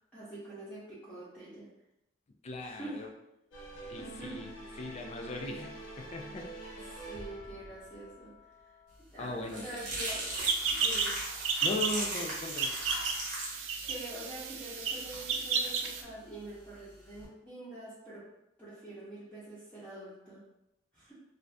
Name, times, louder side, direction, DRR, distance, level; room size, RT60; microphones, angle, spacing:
voice 1, 0.1-1.7 2.6-3.0 4.0-4.4 6.7-6.8 7.1-8.3 9.1-10.3 10.7-11.1 13.5-18.2 18.6-20.4 20.9-21.1, right 1 dB, 5° left, -12 dB, 0.7 m, -45 dB
voice 2, 2.4-3.1 3.9-4.5 4.8-6.5 9.2-9.8 11.6-12.7, left 2 dB, 35° left, 3 dB, 0.3 m, -38 dB
sound 1, 3.5-9.0, right 2 dB, 75° left, 0.7 m, -46 dB
sound 2, 9.0-17.2, right 1 dB, 40° right, 0.8 m, -40 dB
sound 3, 10.4-16.0, right 5 dB, 85° right, 0.4 m, -33 dB
2.6 x 2.3 x 3.3 m, 0.86 s
head